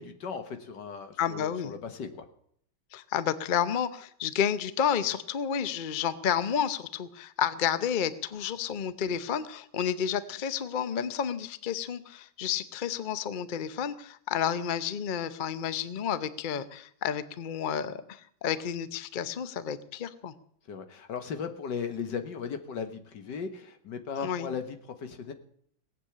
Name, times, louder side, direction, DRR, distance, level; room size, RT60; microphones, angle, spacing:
voice 1, 0.0-2.3 20.7-25.3, left 6 dB, 65° left, 7 dB, 2.0 m, -37 dB
voice 2, 1.2-1.7 2.9-20.3 24.2-24.5, left 8 dB, 85° left, 14 dB, 0.4 m, -31 dB
18.5 x 8.3 x 8.5 m, 0.65 s
omnidirectional pair, 2.1 m